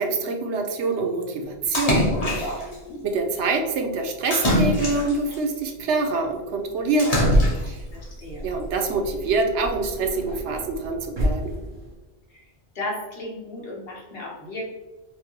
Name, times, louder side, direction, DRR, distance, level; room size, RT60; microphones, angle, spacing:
voice 1, 0.0-2.6 3.0-7.3 7.6-7.8 8.4-11.6, right 3 dB, 90° right, 4 dB, 0.9 m, -25 dB
Splash splatter, 1.7-2.7 4.3-5.4 7.0-7.8, left 1 dB, 40° left, 0.8 m, -23 dB
voice 2, 2.7-3.0 7.9-8.5 12.3-12.4 12.7-14.7, left 1 dB, 60° left, -3 dB, 1.2 m, -35 dB
sound 1, 7.2-12.0, equal, 25° right, 0.8 m, -28 dB
4.4 x 2.1 x 2.9 m, 1.1 s
omnidirectional pair, 1.1 m